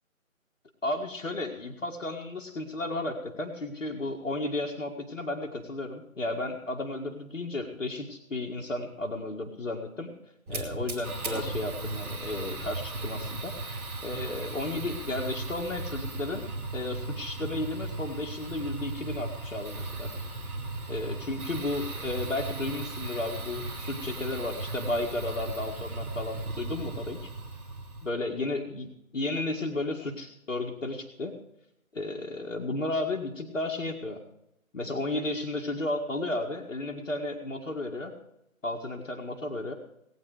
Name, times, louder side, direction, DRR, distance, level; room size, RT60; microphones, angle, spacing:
voice 1, 0.8-10.1 10.5-20.1 20.9-27.3 28.0-31.3 31.9-34.2 34.7-38.1 38.6-39.7, left 2 dB, 60° left, 0 dB, 2.0 m, -33 dB
Fire, 10.5-28.1, right 2 dB, 10° right, 1.4 m, -36 dB
19.0 x 9.0 x 4.8 m, 0.81 s
figure-of-eight pair, 160°, 42 cm